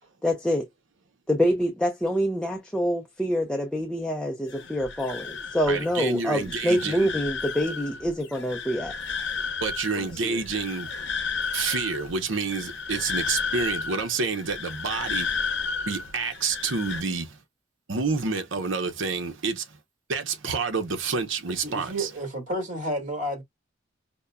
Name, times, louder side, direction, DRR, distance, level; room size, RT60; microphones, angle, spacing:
voice 1, 0.2-0.7 1.3-8.9 10.0-10.4, equal, 5° left, 0.6 m, -26 dB
sound 1, 4.5-17.0, left 5 dB, 65° left, 0.8 m, -33 dB
voice 2, 5.7-7.1 9.6-10.9 11.5-15.4 15.9-17.4 17.9-19.8 20.1-22.1, right 4 dB, 70° right, 0.8 m, -28 dB
voice 3, 21.6-23.4, right 1 dB, 40° right, 1.7 m, -31 dB
5.3 x 2.2 x 2.2 m
head